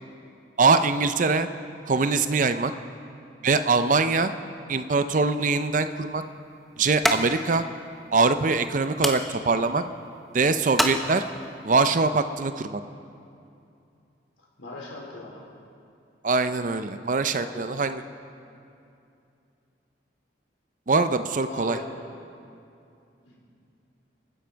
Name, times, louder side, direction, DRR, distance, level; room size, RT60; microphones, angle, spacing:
voice 1, 0.6-1.5 1.9-2.7 3.4-4.3 4.7-6.2 6.8-7.6 8.1-9.8 10.3-11.2 11.6-12.8 16.2-18.0 20.9-21.8, right 4 dB, 45° right, 10 dB, 0.5 m, -23 dB
sound 1, 5.3-11.6, equal, ahead, 0.8 m, -32 dB
voice 2, 14.4-15.4 17.4-17.8 21.4-21.9 23.2-23.4, left 2 dB, 90° left, -3 dB, 3.9 m, -39 dB
28.5 x 10.0 x 4.6 m, 2.6 s
head